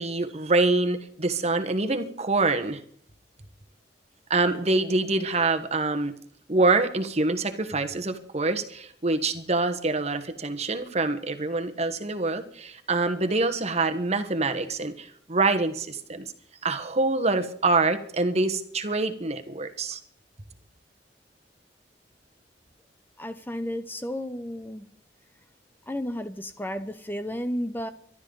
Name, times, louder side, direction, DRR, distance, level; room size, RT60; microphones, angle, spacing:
voice 1, 0.0-2.8 4.3-6.1 6.5-16.3 16.6-20.0, right 3 dB, 35° right, 7 dB, 1.3 m, -25 dB
voice 2, 23.2-24.9 25.9-27.9, equal, 10° left, 10 dB, 0.7 m, -32 dB
24.0 x 12.0 x 4.0 m, 0.62 s
head